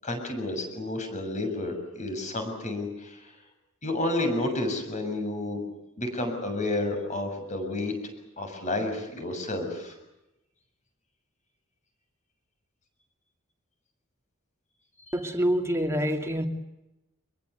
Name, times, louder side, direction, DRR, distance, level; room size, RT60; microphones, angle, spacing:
voice 1, 0.0-3.2 3.8-5.6 6.0-7.9 8.4-9.9, left 2 dB, 35° left, 5 dB, 7.1 m, -30 dB
voice 2, 15.1-16.5, equal, 15° right, 3 dB, 2.7 m, -26 dB
25.5 x 22.5 x 8.3 m, 0.92 s
head